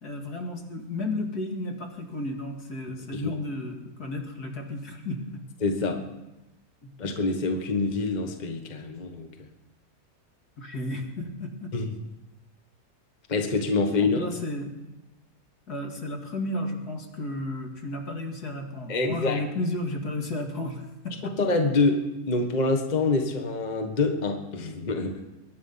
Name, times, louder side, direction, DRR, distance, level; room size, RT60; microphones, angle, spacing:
voice 1, 0.0-5.4 6.8-6.9 10.6-11.7 14.0-14.7 15.7-21.4, left 1 dB, 70° left, 2 dB, 2.7 m, -33 dB
voice 2, 5.6-6.0 7.0-9.5 11.7-11.9 13.3-14.3 18.9-19.4 21.4-25.2, left 3 dB, 30° left, 4 dB, 1.4 m, -26 dB
22.5 x 10.5 x 5.6 m, 0.99 s
omnidirectional pair, 1.7 m